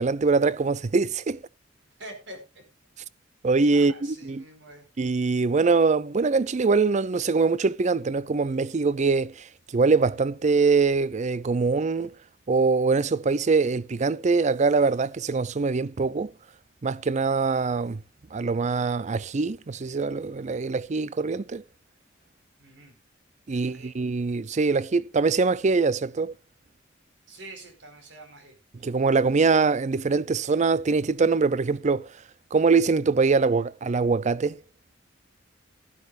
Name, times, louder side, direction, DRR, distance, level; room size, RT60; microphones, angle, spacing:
voice 1, 0.0-1.4 3.4-4.4 5.0-9.5 9.7-12.1 12.5-16.3 16.8-18.0 18.3-21.6 23.5-26.3 28.8-32.1 32.5-34.6, right 4 dB, 40° right, 0.5 m, -23 dB
voice 2, 2.0-2.6 3.7-4.8 22.6-22.9 23.5-24.0 27.3-28.5, right 1 dB, 65° right, 4.5 m, -45 dB
14.0 x 12.0 x 2.5 m
head